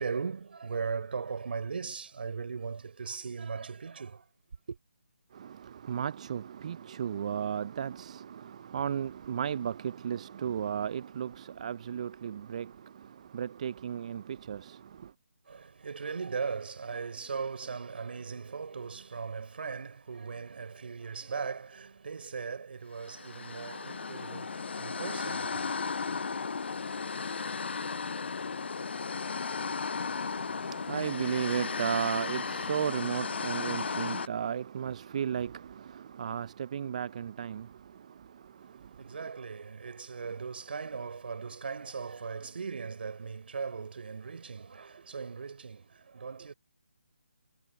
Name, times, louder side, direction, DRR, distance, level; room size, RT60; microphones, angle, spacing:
voice 1, 0.0-4.2 4.7-4.8 15.5-25.7 39.0-46.5, right 5 dB, 55° right, 3.8 m, -38 dB
voice 2, 5.3-12.7 13.3-14.8 30.9-37.7, right 8 dB, 35° right, 0.4 m, -34 dB
sound 1, 23.0-34.3, left 5 dB, 65° left, 0.4 m, -35 dB
figure-of-eight pair, 155°, 6 cm